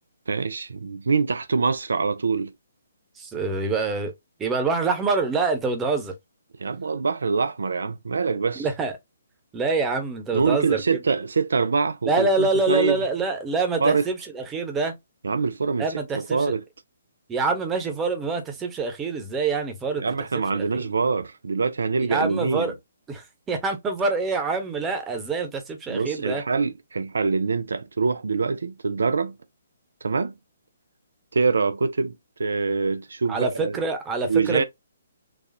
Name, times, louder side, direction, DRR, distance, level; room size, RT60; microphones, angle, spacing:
voice 1, 0.3-2.5 6.6-8.7 10.3-13.0 13.8-14.1 15.2-15.9 16.1-16.6 20.0-22.7 25.9-29.3 30.0-30.3 31.3-32.1 32.4-33.8 34.2-34.6, right 4 dB, 75° right, 0.5 m, -24 dB
voice 2, 3.2-4.1 4.4-6.1 8.6-8.9 9.5-10.8 12.0-15.0 15.8-16.5 17.3-20.0 20.3-20.9 22.1-22.7 23.1-26.4 33.3-34.6, right 3 dB, 15° right, 1.0 m, -26 dB
4.1 x 2.4 x 2.6 m
figure-of-eight pair, 140°, 0 cm